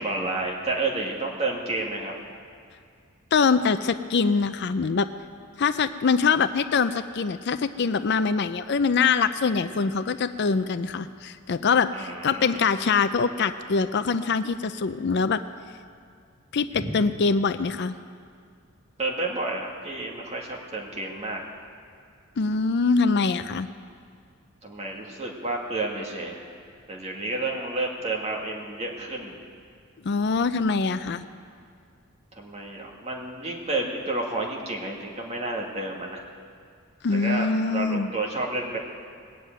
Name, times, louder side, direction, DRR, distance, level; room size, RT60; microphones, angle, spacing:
voice 1, 0.0-2.1 11.9-12.6 16.7-16.9 19.0-21.4 24.6-26.5 26.9-29.4 32.3-36.2 37.1-38.8, right 2 dB, 30° right, -1 dB, 2.1 m, -30 dB
voice 2, 3.3-5.1 5.6-15.4 16.5-18.0 22.4-23.7 30.0-31.3 37.0-38.1, left 5 dB, 50° left, 11 dB, 0.4 m, -24 dB
20.0 x 7.8 x 9.1 m, 2.2 s
head